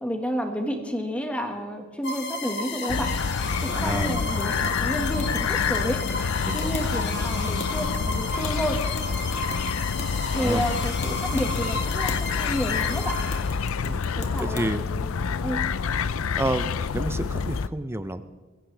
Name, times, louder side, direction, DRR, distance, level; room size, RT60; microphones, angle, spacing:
voice 1, 0.0-3.1 3.6-6.0 6.5-8.8 10.3-13.2 14.2-15.6, equal, 5° left, 4 dB, 1.6 m, -30 dB
sound 1, 2.0-13.9, left 3 dB, 60° left, 2.0 m, -34 dB
sound 2, 2.9-17.7, left 5 dB, 80° left, 0.5 m, -27 dB
voice 2, 3.7-4.2 6.5-6.6 10.3-10.6 13.8-14.0 14.4-14.8 16.4-18.2, right 1 dB, 10° right, 12 dB, 0.5 m, -29 dB
sound 3, 4.4-14.7, left 3 dB, 35° left, 1.9 m, -42 dB
22.0 x 15.5 x 3.4 m, 1.4 s
head